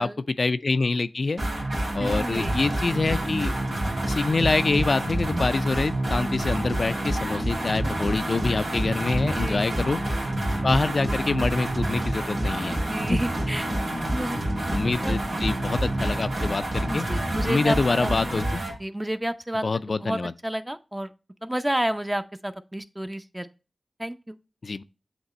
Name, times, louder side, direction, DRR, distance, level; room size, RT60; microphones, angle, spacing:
voice 1, 0.4-1.4 1.9-3.5 4.1-10.0 10.6-12.8 13.1-13.2 14.2-14.3 14.7-17.1 17.4-18.6 19.6-20.3 24.6-24.8, left 3 dB, 65° left, 0.3 m, -26 dB
sound 1, 1.4-18.8, right 1 dB, 80° right, 1.7 m, -27 dB
voice 2, 2.0-2.5 8.0-8.1 9.2-9.6 12.7-13.7 14.1-14.4 15.0-15.2 16.9-18.1 18.6-19.6 20.0-21.1 21.4-23.5 24.0-24.4, right 1 dB, 15° right, 0.6 m, -30 dB
8.0 x 2.9 x 4.1 m
cardioid pair, 45°, 0 cm